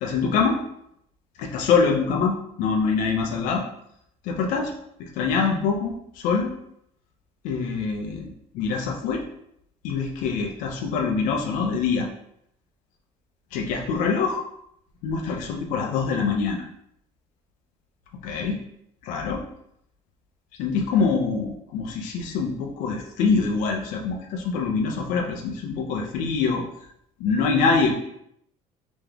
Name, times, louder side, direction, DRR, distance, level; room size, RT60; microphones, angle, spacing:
voice 1, 0.0-0.6 1.4-3.6 4.2-4.7 5.0-6.5 7.4-8.3 8.5-9.2 9.8-12.1 13.5-14.4 15.0-16.7 18.2-18.6 19.0-19.4 20.6-26.7 27.2-27.9, left 5 dB, 75° left, 2 dB, 0.6 m, -24 dB
3.5 x 3.1 x 3.5 m, 0.74 s
cardioid pair, 175°, 14 cm